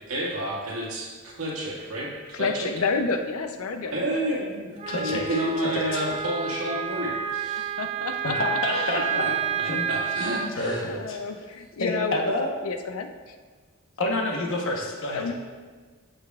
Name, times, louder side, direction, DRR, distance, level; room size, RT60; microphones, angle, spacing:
voice 1, 0.1-2.7 3.9-4.7 5.0-7.7 9.1-9.3 9.9-10.8, right 1 dB, 75° right, -5 dB, 1.8 m, -30 dB
voice 2, 2.3-4.0 7.8-8.4 8.7-9.0 10.9-12.4 12.6-13.4 15.1-15.3, left 4 dB, 85° left, 7 dB, 0.5 m, -30 dB
Wind instrument woodwind instrument, 4.8-10.5, right 8 dB, 30° right, 0.3 m, -30 dB
voice 3, 4.9-5.4 5.8-6.0 8.2-9.3 9.6-9.8 10.5-11.2 11.8-12.5 14.0-15.2, left 1 dB, 65° left, 0 dB, 1.1 m, -28 dB
8.3 x 6.8 x 2.4 m, 1.5 s
head